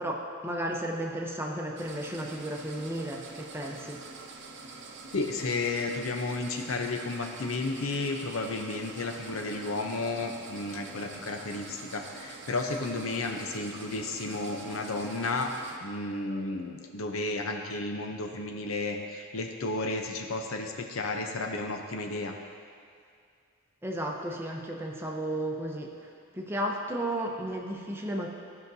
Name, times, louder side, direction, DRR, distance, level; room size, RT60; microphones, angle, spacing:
voice 1, 0.0-4.0 23.8-25.9 26.3-28.3, right 1 dB, 10° right, 0 dB, 0.7 m, -33 dB
sound 1, 1.8-15.8, right 3 dB, 60° right, 0.7 m, -46 dB
voice 2, 5.1-15.5 15.8-22.3, left 3 dB, 80° left, 3 dB, 0.7 m, -32 dB
14.5 x 5.8 x 2.7 m, 2.3 s
head